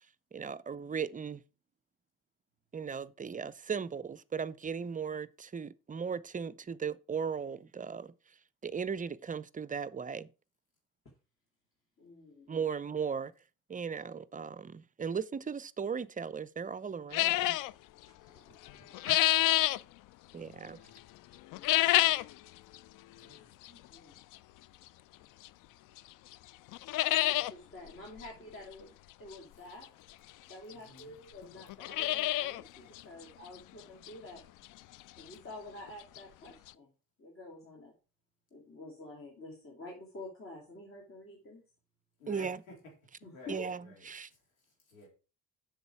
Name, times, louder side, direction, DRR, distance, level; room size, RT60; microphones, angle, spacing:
voice 1, 0.3-1.4 2.7-8.1 8.6-10.3 12.5-13.3 13.7-17.6 20.3-20.8 42.3-42.6 43.5-43.8 44.1-44.3, right 6 dB, 20° right, 0.6 m, -37 dB
voice 2, 12.0-12.5 18.2-18.4 18.7-19.6 23.7-24.2 27.1-28.9 29.2-29.9 30.5-34.4 35.2-36.9 37.2-37.9 38.5-41.6 43.2-43.6, left 2 dB, 30° left, 2.8 m, -49 dB
sound 1, 17.1-17.7 18.7-19.8 21.5-22.3 22.7-22.8 23.7-23.8 25.4-25.5 26.0-26.1 26.3-26.4 26.7-27.5 27.9-28.0 28.2-28.3 29.8-29.9 30.7-30.8 31.0-31.1 31.6-32.6 33.0-33.1 33.6-33.7 34.1-34.2 35.9-36.0 36.2-36.3 36.7-36.8, left 16 dB, 50° left, 0.5 m, -27 dB
voice 3, 20.4-21.0 23.1-23.5 27.4-27.5 30.7-31.1 42.2-42.9 43.3-45.1, left 1 dB, 80° left, 3.7 m, -53 dB
8.0 x 6.4 x 4.7 m
hypercardioid pair, 55°, 41 cm